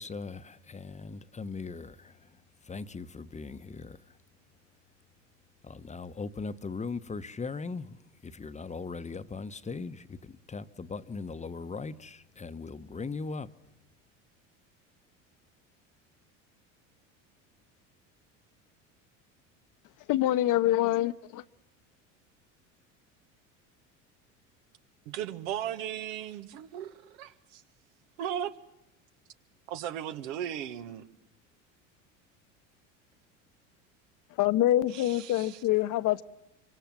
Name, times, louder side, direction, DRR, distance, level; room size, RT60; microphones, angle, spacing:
voice 1, 0.0-4.2 5.6-13.5, left 4 dB, 20° left, 1.0 m, -39 dB
voice 2, 20.1-21.4 34.4-36.2, left 14 dB, 55° left, 1.0 m, -25 dB
voice 3, 25.1-27.6 28.2-28.5 29.7-31.1 34.9-35.6, right 10 dB, 75° right, 1.7 m, -37 dB
25.5 x 25.0 x 7.6 m
hypercardioid pair, 85°, 38 cm